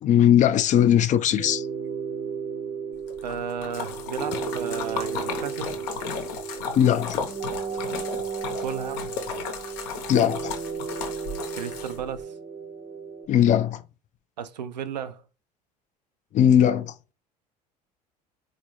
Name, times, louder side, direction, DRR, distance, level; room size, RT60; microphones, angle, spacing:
voice 1, 0.0-1.7 6.8-7.2 10.1-10.5 13.3-13.8 16.3-16.9, left 10 dB, 35° left, 0.4 m, -19 dB
sound 1, 1.3-13.3, right 6 dB, 35° right, 0.5 m, -34 dB
Splash splatter, 3.1-12.2, left 6 dB, 70° left, 0.7 m, -35 dB
voice 2, 3.2-5.7 8.6-9.1 11.5-12.4 14.4-15.2, right 7 dB, 90° right, 0.4 m, -34 dB
3.9 x 2.4 x 3.0 m
hypercardioid pair, 65°, 21 cm